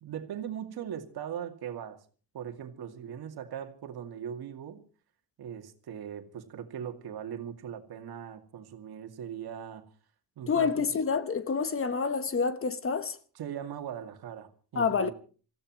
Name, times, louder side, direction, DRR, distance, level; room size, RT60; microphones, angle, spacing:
voice 1, 0.0-2.0 2.3-4.8 5.4-9.8 10.4-10.9 13.3-15.1, right 9 dB, 70° right, 2.3 m, -40 dB
voice 2, 10.5-13.2 14.8-15.1, left 5 dB, 35° left, 1.1 m, -28 dB
27.0 x 15.5 x 3.1 m
cardioid pair, 130°, 40 cm